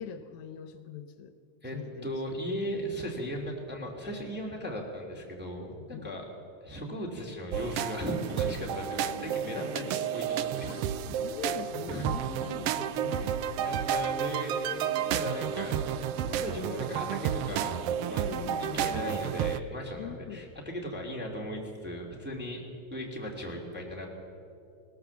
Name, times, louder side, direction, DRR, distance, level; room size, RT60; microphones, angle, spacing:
voice 1, 0.0-1.3 1.7-2.2 5.9-6.1 9.5-9.7 10.7-10.9 11.2-13.4 18.2-18.8 20.0-20.5, left 8 dB, 80° left, 9 dB, 2.2 m, -42 dB
voice 2, 1.6-6.2 6.6-10.7 11.1-11.2 11.9-12.1 13.6-14.5 15.1-17.7 18.1-18.2 18.6-22.6 22.9-24.1, equal, 5° right, -1 dB, 2.3 m, -37 dB
sound 1, 7.5-19.6, right 9 dB, 85° right, 1.3 m, -31 dB
20.0 x 18.5 x 7.2 m, 2.6 s
omnidirectional pair, 3.4 m